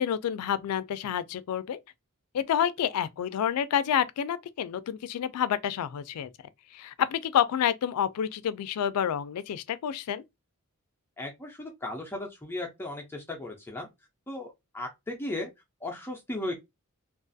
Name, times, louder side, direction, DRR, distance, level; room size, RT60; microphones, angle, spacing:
voice 1, 0.0-1.8 2.3-6.3 6.7-10.2, left 9 dB, 90° left, 0.3 m, -28 dB
voice 2, 11.2-13.9 14.3-15.5 15.8-16.5, left 1 dB, 10° left, 0.4 m, -36 dB
2.4 x 2.3 x 2.5 m
head